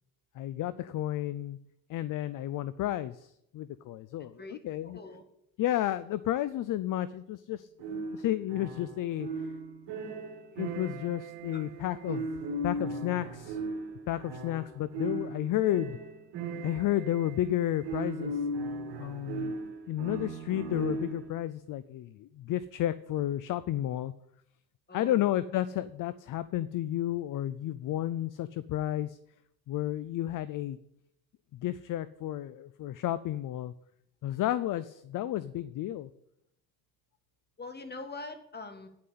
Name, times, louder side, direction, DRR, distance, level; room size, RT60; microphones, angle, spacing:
voice 1, 0.4-1.6 1.9-5.0 5.6-9.3 10.6-12.3 12.6-13.6 14.1-16.0 16.6-18.4 19.0-19.6 19.9-24.1 24.9-29.2 29.7-30.8 31.5-33.7 34.2-36.1, left 13 dB, 50° left, 16 dB, 0.5 m, -32 dB
voice 2, 4.8-5.2 11.5-11.6 12.1-12.2 24.9-25.3 37.6-38.9, left 3 dB, 25° left, 7 dB, 1.7 m, -43 dB
sound 1, 7.8-21.4, right 2 dB, 65° right, 2.5 m, -37 dB
9.6 x 5.7 x 8.4 m, 0.77 s
supercardioid pair, 85°, 43 cm